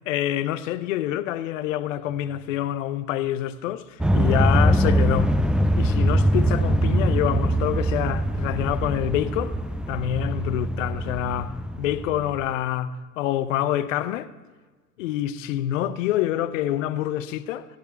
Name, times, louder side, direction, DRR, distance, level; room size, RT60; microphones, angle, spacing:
voice 1, 0.1-5.3 5.8-9.5 9.9-14.3 15.0-17.7, left 11 dB, 65° left, 0.7 m, -26 dB
sound 1, 4.0-12.4, right 1 dB, ahead, 0.8 m, -22 dB
15.0 x 10.0 x 4.5 m
figure-of-eight pair, 65°, 41 cm